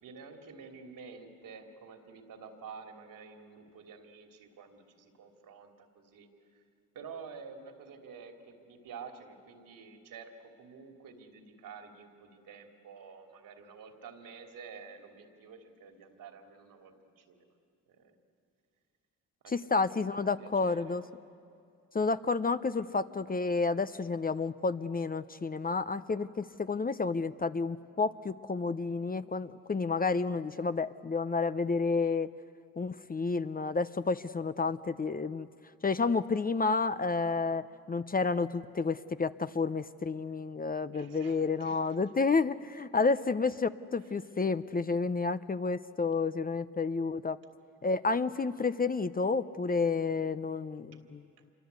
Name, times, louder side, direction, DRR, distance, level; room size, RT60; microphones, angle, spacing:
voice 1, 0.0-6.6 6.9-17.5 17.9-18.2 19.4-20.1 20.4-21.0 30.4-30.7 40.9-41.9 50.9-51.0, right 5 dB, 70° right, 4 dB, 3.0 m, -50 dB
voice 2, 19.5-21.0 21.9-32.3 32.8-35.5 35.8-47.4 47.8-51.2, left 4 dB, 25° left, 12 dB, 0.8 m, -30 dB
26.5 x 23.0 x 8.2 m, 2.4 s
supercardioid pair, 65°, 34 cm